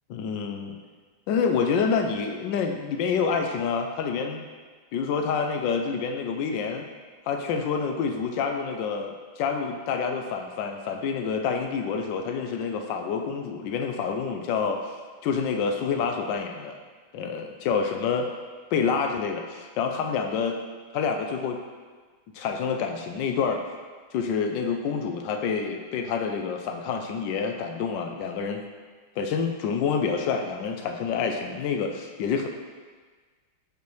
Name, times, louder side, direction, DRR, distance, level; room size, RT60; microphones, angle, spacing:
voice 1, 0.1-0.8 1.3-4.4 4.9-6.8 7.3-14.9 15.2-16.8 17.1-18.3 18.7-20.6 20.9-21.6 22.3-23.6 24.1-28.6 29.2-32.5, left 6 dB, 75° left, 4 dB, 1.1 m, -27 dB
6.7 x 5.1 x 3.1 m, 1.5 s
omnidirectional pair, 2.2 m